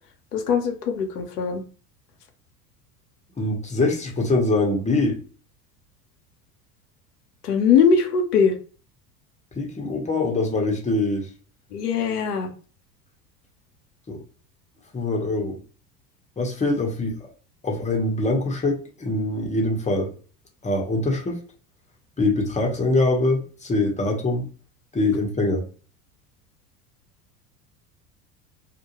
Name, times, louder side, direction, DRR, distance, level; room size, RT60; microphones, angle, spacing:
voice 1, 0.3-1.6 7.4-8.5 11.7-12.5, left 6 dB, 80° left, 4 dB, 0.7 m, -21 dB
voice 2, 3.4-5.2 9.6-11.3 14.1-14.2 14.9-15.6 16.4-17.3 17.6-20.1 20.6-21.4 22.2-24.5 24.9-25.6, left 2 dB, 15° left, 0 dB, 0.8 m, -23 dB
2.3 x 2.1 x 2.9 m, 0.39 s
hypercardioid pair, 75°, 46 cm